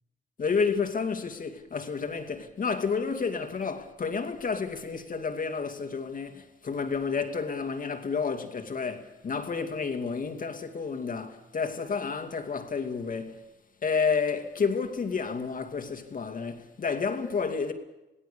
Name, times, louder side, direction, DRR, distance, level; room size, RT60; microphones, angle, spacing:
voice 1, 0.4-13.5 13.8-17.7, left 5 dB, 45° left, 2.5 m, -30 dB
27.5 x 18.0 x 7.0 m
cardioid pair, 90°, 20 cm